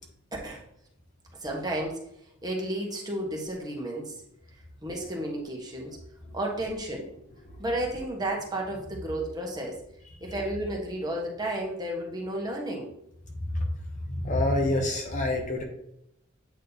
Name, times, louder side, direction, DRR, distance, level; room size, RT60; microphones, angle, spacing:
voice 1, 0.3-0.6 1.4-2.0 2.4-4.2 4.8-6.0 6.3-7.1 7.6-9.8 10.2-12.9, right 1 dB, 20° right, -1 dB, 1.4 m, -32 dB
voice 2, 14.2-15.6, left 1 dB, 40° left, 2 dB, 1.0 m, -26 dB
8.4 x 3.2 x 4.0 m, 0.76 s
head